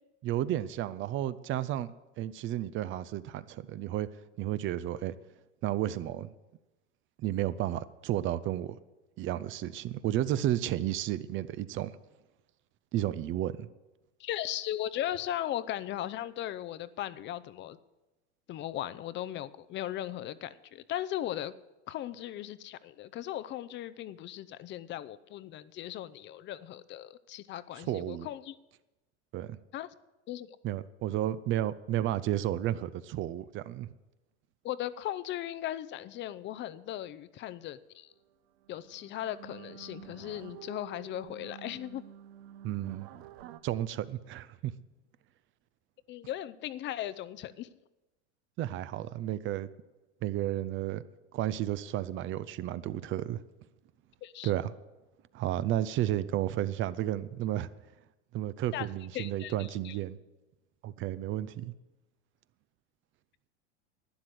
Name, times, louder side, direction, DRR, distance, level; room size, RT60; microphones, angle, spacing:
voice 1, 0.2-1.9 2.2-4.1 4.4-5.1 5.6-6.3 7.2-8.8 9.2-11.9 12.9-13.7 27.8-28.3 29.3-29.6 30.6-33.9 42.6-43.1 43.6-44.7 48.6-49.7 50.2-51.0 51.3-53.4 54.4-54.7 55.3-57.7 58.3-60.2 60.8-61.7, right 13 dB, 35° right, 16 dB, 0.6 m, -32 dB
voice 2, 14.2-17.8 18.5-21.5 21.9-28.5 29.7-29.9 30.3-30.5 34.6-38.1 38.7-42.0 46.1-47.7 54.2-54.5 58.7-58.9 59.1-60.0, left 12 dB, 35° left, 16 dB, 0.6 m, -37 dB
sound 1, 38.2-38.3 38.6-43.6, right 11 dB, 65° right, 0.9 m, -49 dB
12.0 x 9.7 x 7.9 m, 1.1 s
hypercardioid pair, 110°, 34 cm